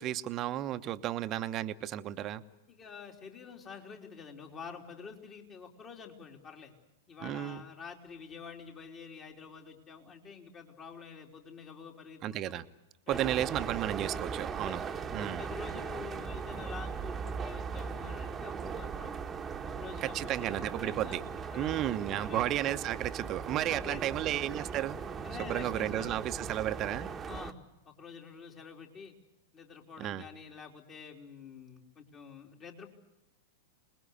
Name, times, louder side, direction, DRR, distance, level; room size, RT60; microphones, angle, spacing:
voice 1, 0.0-2.4 7.2-7.6 12.2-12.6 13.1-14.8 15.1-15.4 20.0-21.2 21.5-25.0 25.5-27.1 30.0-30.2, right 12 dB, 35° right, 11 dB, 1.1 m, -33 dB
voice 2, 2.7-6.7 7.1-12.5 13.1-13.3 14.6-19.2 19.6-21.2 21.5-21.8 22.1-22.5 23.7-24.2 25.2-26.2 27.3-27.6 27.8-29.1 29.5-32.9, left 5 dB, 30° left, 2 dB, 3.7 m, -47 dB
sound 1, 13.1-27.5, right 6 dB, 20° right, 1.4 m, -39 dB
26.0 x 20.5 x 8.2 m, 0.94 s
figure-of-eight pair, 100°, 0 cm